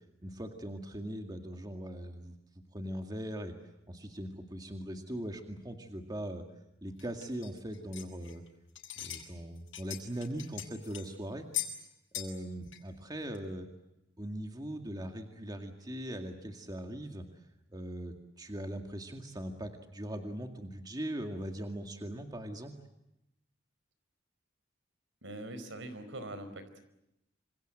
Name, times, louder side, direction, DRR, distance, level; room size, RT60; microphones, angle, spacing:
voice 1, 0.2-2.3 2.7-3.5 3.9-6.4 6.8-8.4 9.0-11.5 12.1-13.7 14.2-17.2 17.7-22.7, right 1 dB, 20° right, 4 dB, 2.1 m, -40 dB
sound 1, 7.0-8.5 8.8-9.3 9.6-11.1 11.5-11.8 12.1-12.4 12.7-12.8 13.3-13.4, left 13 dB, 90° left, 5.2 m, -40 dB
voice 2, 25.2-26.8, right 1 dB, 75° right, 11 dB, 4.8 m, -43 dB
27.5 x 26.5 x 7.9 m, 0.86 s
head